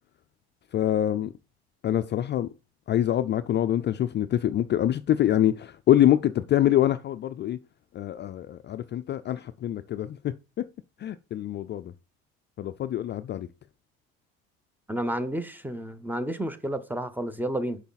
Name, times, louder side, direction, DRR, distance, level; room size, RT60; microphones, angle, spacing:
voice 1, 0.7-1.3 1.8-2.5 2.9-7.6 7.9-10.6 11.0-11.9 12.6-13.5, left 12 dB, 35° left, 0.4 m, -25 dB
voice 2, 14.9-17.8, right 1 dB, 5° right, 0.8 m, -31 dB
6.8 x 4.8 x 4.0 m
supercardioid pair, 80°, 30 cm